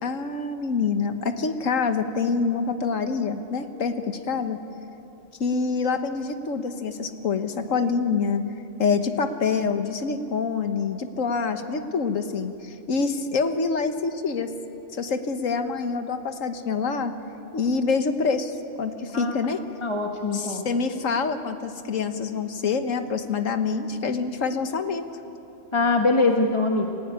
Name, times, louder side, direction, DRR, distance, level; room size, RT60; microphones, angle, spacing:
voice 1, 0.0-4.6 5.4-8.4 8.8-14.5 14.9-17.1 17.5-19.6 20.3-25.0, left 5 dB, 75° left, 8 dB, 1.7 m, -26 dB
voice 2, 19.8-20.7 25.7-26.9, left 3 dB, 20° left, 2 dB, 1.4 m, -22 dB
29.0 x 15.5 x 9.6 m, 2.9 s
omnidirectional pair, 1.4 m